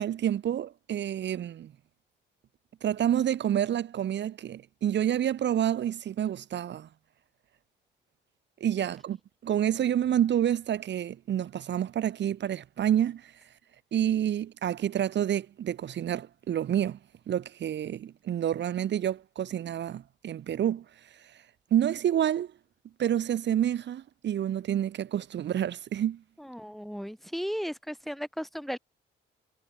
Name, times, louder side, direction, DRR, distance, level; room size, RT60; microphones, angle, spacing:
voice 1, 0.0-1.7 2.8-6.9 8.6-9.2 9.4-13.3 13.9-17.0 17.3-20.8 21.7-22.5 23.0-26.2, right 10 dB, 65° right, 1.7 m, -28 dB
voice 2, 26.4-28.8, equal, ahead, 3.1 m, -35 dB
cardioid pair, 90°, 20 cm